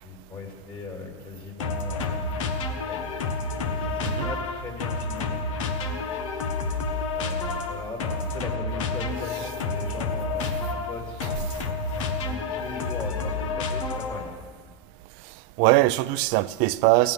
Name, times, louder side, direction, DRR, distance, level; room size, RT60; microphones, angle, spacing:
voice 1, 0.0-2.3 2.9-3.1 3.7-5.4 7.1-11.4 12.3-14.3, left 4 dB, 35° left, 3.0 m, -39 dB
sound 1, 1.6-14.4, left 3 dB, 80° left, 1.4 m, -29 dB
voice 2, 15.6-17.1, right 19 dB, 60° right, 0.5 m, -21 dB
16.5 x 9.4 x 6.7 m
hypercardioid pair, 95°, 16 cm